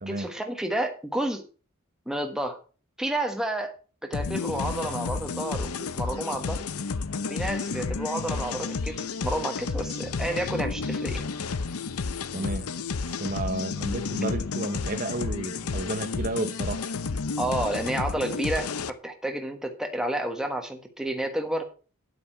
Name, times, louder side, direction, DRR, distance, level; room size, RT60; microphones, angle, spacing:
voice 1, 0.1-1.4 2.1-2.6 3.0-3.8 4.0-6.6 7.3-8.9 9.2-11.2 17.4-21.7, right 1 dB, 5° right, 1.3 m, -30 dB
sound 1, 4.1-18.9, left 4 dB, 80° left, 0.7 m, -31 dB
voice 2, 12.3-12.7 13.1-16.8, right 2 dB, 40° right, 0.9 m, -32 dB
9.7 x 8.7 x 4.4 m
head